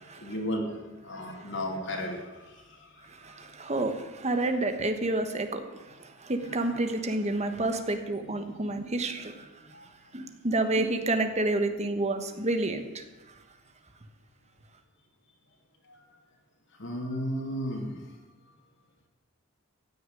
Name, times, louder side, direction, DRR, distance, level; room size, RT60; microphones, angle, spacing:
voice 1, 0.2-3.4 6.5-6.7 9.7-9.8 15.9-16.0 16.8-18.0, equal, 60° left, 1 dB, 2.5 m, -35 dB
voice 2, 3.0-9.5 10.1-13.0, right 2 dB, 35° right, 7 dB, 1.3 m, -29 dB
15.0 x 6.6 x 9.2 m, 1.2 s
head